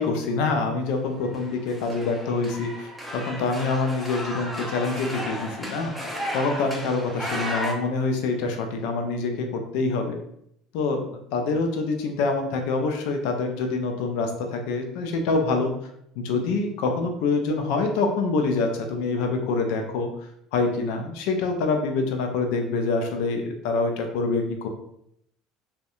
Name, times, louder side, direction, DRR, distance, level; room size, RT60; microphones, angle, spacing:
voice 1, 0.0-5.9 6.3-10.2 10.7-11.0 11.3-15.7 16.2-24.7, left 3 dB, 75° left, 4 dB, 0.4 m, -26 dB
sound 1, 1.2-7.7, equal, ahead, 0.5 m, -34 dB
2.6 x 2.1 x 2.4 m, 0.73 s
supercardioid pair, 90°, 0 cm